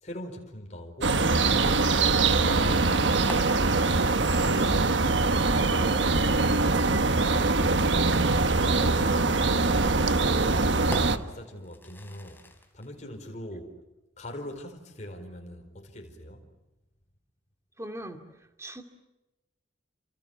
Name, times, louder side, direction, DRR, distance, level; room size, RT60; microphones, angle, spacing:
voice 1, 0.0-3.4 4.0-5.2 5.6-10.1 10.5-12.4 12.7-13.8 14.2-16.5, equal, 35° left, 4.5 m, -42 dB
sound 1, 1.0-11.2, right 3 dB, 70° right, 1.3 m, -23 dB
sound 2, 3.3-5.4 6.9-7.0 9.0-12.9, left 1 dB, 10° left, 3.4 m, -46 dB
voice 2, 17.8-18.2 18.6-18.8, right 1 dB, 15° right, 2.5 m, -39 dB
29.5 x 27.5 x 7.1 m
head